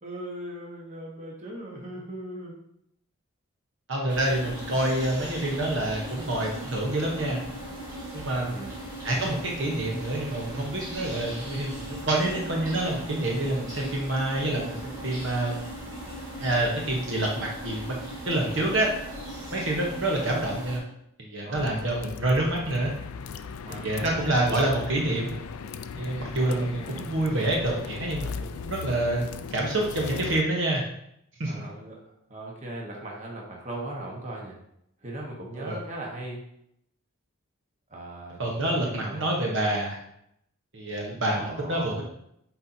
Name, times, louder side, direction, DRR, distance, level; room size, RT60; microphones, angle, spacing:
voice 1, 0.0-2.5 8.4-8.7 21.4-21.7 23.6-24.2 26.4-27.1 31.4-32.0 32.3-34.6 35.0-36.4 37.9-39.3 41.2-42.0, right 1 dB, 35° right, -2 dB, 1.2 m, -39 dB
voice 2, 3.9-7.4 8.1-8.6 9.0-15.6 16.4-17.9 18.3-18.9 19.5-20.8 21.2-22.9 23.7-25.4 25.9-29.3 29.5-30.8 31.4-31.7 35.5-35.8 38.4-40.0 40.7-42.0, right 1 dB, 60° right, -2 dB, 1.0 m, -27 dB
sound 1, 4.1-20.8, equal, 20° right, 1.6 m, -38 dB
sound 2, 21.5-30.4, left 6 dB, 90° left, 0.4 m, -38 dB
7.9 x 4.4 x 2.7 m, 0.75 s
head